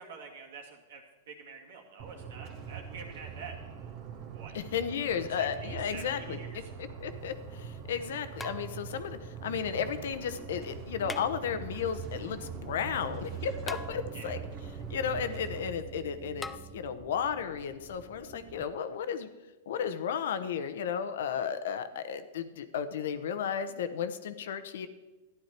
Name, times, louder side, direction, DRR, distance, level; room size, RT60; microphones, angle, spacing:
voice 1, 0.0-4.6 5.3-6.7 14.1-14.4, right 4 dB, 70° right, 1 dB, 2.3 m, -47 dB
sound 1, 2.0-15.7, right 6 dB, 40° right, 1.5 m, -43 dB
voice 2, 4.5-6.4 7.0-14.4 14.9-19.3 19.7-24.9, left 7 dB, 75° left, 10 dB, 0.9 m, -34 dB
sound 2, 7.0-7.1 8.4-9.1 11.0-11.8 13.7-14.4 16.4-16.6, left 3 dB, 10° left, 0.4 m, -42 dB
sound 3, 9.2-18.6, right 5 dB, 20° right, 1.1 m, -48 dB
12.0 x 10.5 x 4.5 m, 1.2 s
hypercardioid pair, 130°, 0 cm